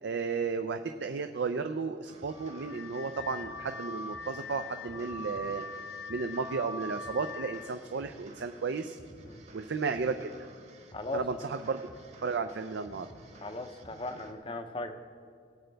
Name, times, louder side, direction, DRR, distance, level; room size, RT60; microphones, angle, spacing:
voice 1, 0.0-5.6 6.1-9.0 9.5-10.5 11.1-11.8 12.2-13.1, right 4 dB, 80° right, 7 dB, 0.4 m, -33 dB
sound 1, 2.0-14.3, right 2 dB, 40° right, 1.0 m, -53 dB
Car / Alarm, 2.3-7.7, left 3 dB, 80° left, 0.4 m, -42 dB
voice 2, 13.4-14.9, left 2 dB, 30° left, 7 dB, 0.6 m, -37 dB
20.5 x 7.9 x 3.4 m, 2.3 s
head